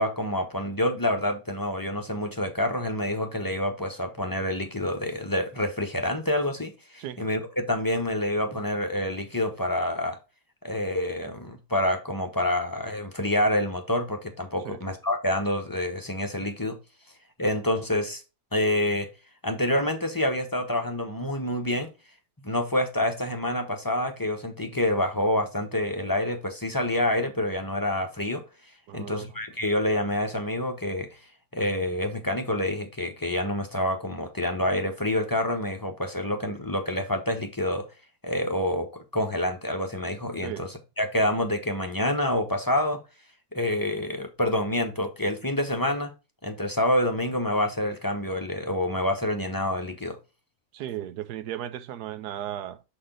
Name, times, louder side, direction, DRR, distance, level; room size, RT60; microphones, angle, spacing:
voice 1, 0.0-10.2 10.6-16.7 17.4-18.2 18.5-19.1 19.4-21.9 22.4-28.4 28.9-31.1 31.5-37.9 38.2-40.7 41.0-43.0 43.5-46.1 46.4-50.2, left 1 dB, 20° left, 0.6 m, -27 dB
voice 2, 28.9-29.4 40.4-40.7 50.7-52.8, right 11 dB, 80° right, 1.2 m, -36 dB
6.7 x 4.3 x 3.7 m
omnidirectional pair, 1.7 m